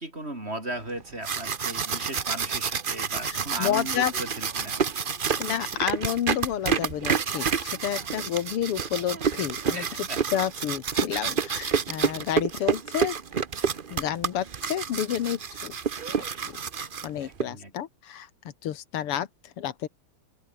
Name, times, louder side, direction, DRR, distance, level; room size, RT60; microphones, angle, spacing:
voice 1, 0.0-4.8 9.7-10.2 17.2-17.7, right 1 dB, 25° right, 6.0 m, -36 dB
sound 1, 1.0-17.4, right 6 dB, 55° right, 0.5 m, -29 dB
voice 2, 3.3-4.1 5.4-13.2 13.9-15.7 16.5-18.3 18.6-19.9, left 10 dB, 85° left, 2.2 m, -30 dB
open air
omnidirectional pair, 2.4 m